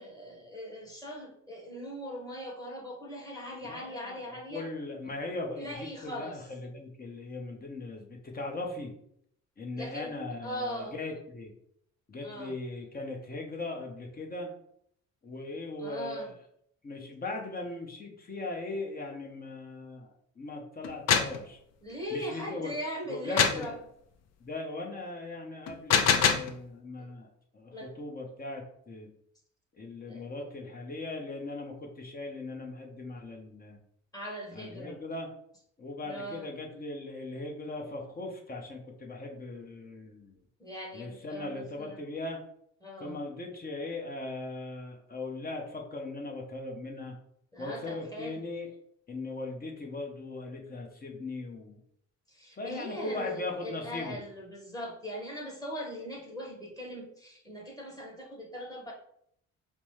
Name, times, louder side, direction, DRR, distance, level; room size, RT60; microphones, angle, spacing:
voice 1, 0.0-4.7 5.6-6.4 9.8-10.1 10.4-11.0 12.2-12.5 15.8-16.3 21.8-23.8 27.0-27.1 27.7-27.9 30.1-30.3 34.1-35.0 36.0-36.5 40.6-42.0 42.8-43.2 47.5-48.4 52.3-58.9, equal, 10° left, -3 dB, 1.4 m, -40 dB
voice 2, 3.7-4.2 4.5-8.9 9.6-11.5 12.1-14.5 15.2-16.3 16.8-21.6 22.1-22.7 23.0-23.7 24.4-27.3 27.5-29.1 29.8-33.8 34.5-35.3 35.8-40.4 40.9-42.4 43.0-47.1 47.6-48.7 49.1-51.8 52.5-54.2, left 2 dB, 30° left, 0 dB, 0.9 m, -39 dB
sound 1, 20.8-21.4 23.4-23.7 25.7-26.5, left 7 dB, 60° left, 0.5 m, -24 dB
5.1 x 2.1 x 3.2 m, 0.70 s
cardioid pair, 90°, 30 cm